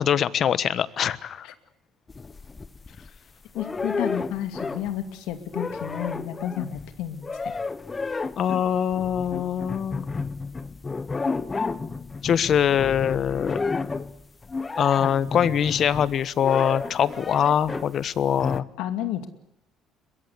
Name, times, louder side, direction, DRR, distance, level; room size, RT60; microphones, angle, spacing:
voice 1, 0.0-1.5 8.4-10.1 12.2-13.6 14.8-18.6, left 9 dB, 45° left, 17 dB, 1.2 m, -23 dB
sound 1, 2.1-3.2 3.6-5.0 5.3-18.0 18.4-18.6, left 4 dB, 20° left, 1.1 m, -32 dB
voice 2, 3.5-7.5 18.8-19.3, left 11 dB, 85° left, 9 dB, 2.4 m, -31 dB
22.5 x 22.0 x 9.7 m, 0.78 s
cardioid pair, 130°, 0 cm